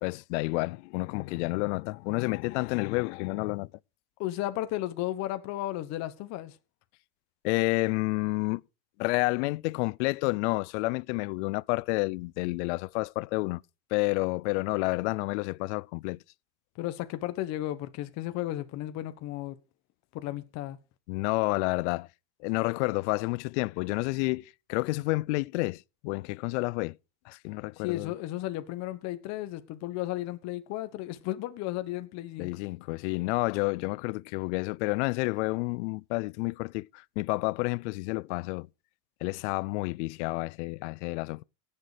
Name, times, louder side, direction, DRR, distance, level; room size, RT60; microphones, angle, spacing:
voice 1, 0.0-3.7 7.4-8.6 9.0-13.6 13.9-16.2 21.1-22.1 22.4-27.0 27.3-28.1 32.4-38.7 39.2-41.4, left 25 dB, 85° left, 0.5 m, -30 dB
voice 2, 4.2-6.6 16.7-19.6 20.1-20.8 27.8-32.5, left 15 dB, 50° left, 1.2 m, -34 dB
17.0 x 6.6 x 4.9 m
cardioid pair, 145°, 34 cm